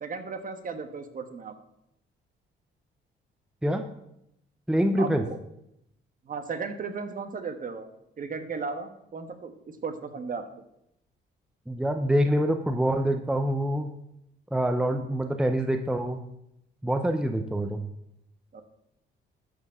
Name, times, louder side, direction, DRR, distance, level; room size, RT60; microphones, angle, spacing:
voice 1, 0.0-1.5 5.0-5.4 6.2-7.9 8.2-9.5 9.8-10.4 18.5-18.6, right 5 dB, 45° right, 7 dB, 1.3 m, -35 dB
voice 2, 4.7-5.2 11.7-13.9 14.5-16.2 16.8-17.9, right 1 dB, 5° right, 7 dB, 0.7 m, -25 dB
12.5 x 4.5 x 5.7 m, 0.80 s
cardioid pair, 90°, 20 cm